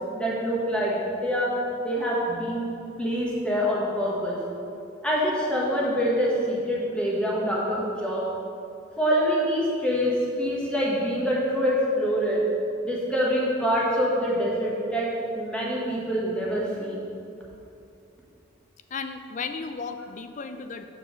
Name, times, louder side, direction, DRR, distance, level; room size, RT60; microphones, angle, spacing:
voice 1, 0.1-1.6 1.8-2.7 3.0-4.4 5.0-8.3 9.0-12.4 12.8-15.1 15.3-17.0, equal, 5° left, -5 dB, 1.3 m, -25 dB
voice 2, 18.9-20.9, left 5 dB, 40° left, 9 dB, 0.4 m, -34 dB
7.0 x 4.7 x 6.2 m, 2.7 s
head